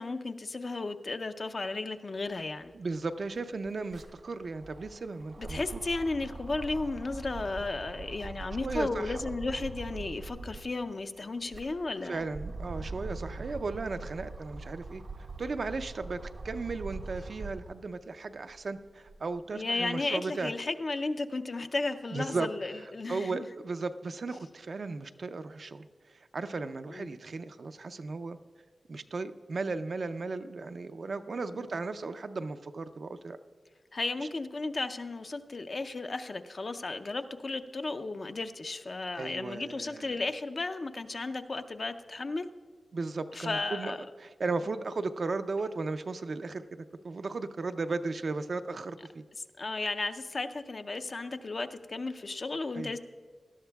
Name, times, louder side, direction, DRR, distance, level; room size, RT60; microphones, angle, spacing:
voice 1, 0.0-2.7 5.4-12.3 19.5-23.5 26.9-27.2 31.5-31.6 33.9-42.5 43.3-44.1 49.6-53.0, left 3 dB, 50° left, 9 dB, 0.5 m, -34 dB
sound 1, 2.6-2.7 3.0-10.8 11.3-17.8 18.3-19.4, right 3 dB, 85° right, 1.4 m, -42 dB
voice 2, 2.7-5.6 8.6-9.2 12.0-15.0 15.4-16.2 16.4-20.5 22.1-22.5 22.8-28.4 28.9-33.4 39.2-40.1 42.9-46.6 47.0-49.2 52.7-52.9, right 3 dB, 60° right, 9 dB, 0.5 m, -36 dB
18.0 x 12.5 x 2.3 m, 1.5 s
wide cardioid pair, 90°, 0 cm